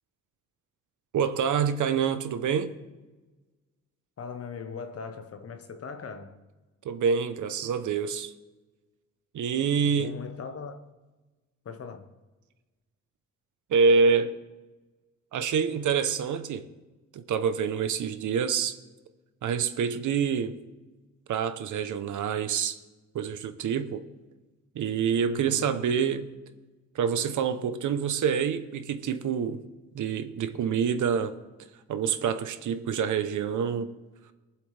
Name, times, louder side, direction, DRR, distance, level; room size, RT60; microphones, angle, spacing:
voice 1, 1.1-2.7 6.8-8.3 9.3-10.1 13.7-14.3 15.3-16.6 17.1-18.8 19.4-20.5 21.3-22.8 23.1-24.0 24.7-26.3 26.9-29.6 29.9-31.3 31.9-33.9, right 6 dB, 75° right, 1.0 m, -26 dB
voice 2, 4.2-6.4 9.8-10.8 11.6-12.1 25.2-25.8, left 5 dB, 50° left, 1.2 m, -39 dB
23.0 x 7.6 x 3.4 m
wide cardioid pair, 140°, 31 cm